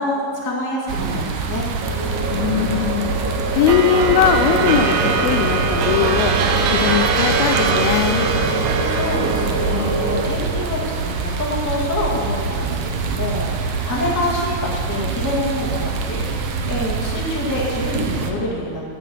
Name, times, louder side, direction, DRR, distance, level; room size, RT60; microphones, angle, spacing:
voice 1, 0.0-1.7 8.9-18.9, left 1 dB, 10° left, -4 dB, 0.8 m, -26 dB
sound 1, 0.9-18.3, right 4 dB, 70° right, 2.1 m, -25 dB
sound 2, 1.8-10.2, right 2 dB, 50° right, 1.7 m, -25 dB
voice 2, 2.3-3.2 3.5-6.4 6.7-8.3, left 10 dB, 85° left, 11 dB, 2.4 m, -20 dB
sound 3, 3.7-9.9, right 5 dB, 90° right, 2.8 m, -22 dB
9.2 x 8.8 x 7.9 m, 2.4 s
omnidirectional pair, 4.3 m